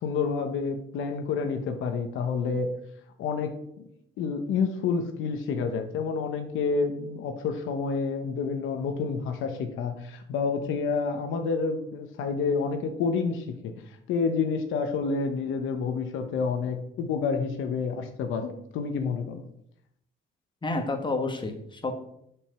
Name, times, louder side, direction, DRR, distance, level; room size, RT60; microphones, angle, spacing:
voice 1, 0.0-2.7 3.2-3.9 4.2-13.7 14.1-19.4, left 5 dB, 90° left, 6 dB, 0.9 m, -29 dB
voice 2, 20.6-22.0, left 2 dB, 25° left, 4 dB, 1.5 m, -30 dB
7.2 x 5.2 x 6.0 m, 0.74 s
cardioid pair, 90°, 20 cm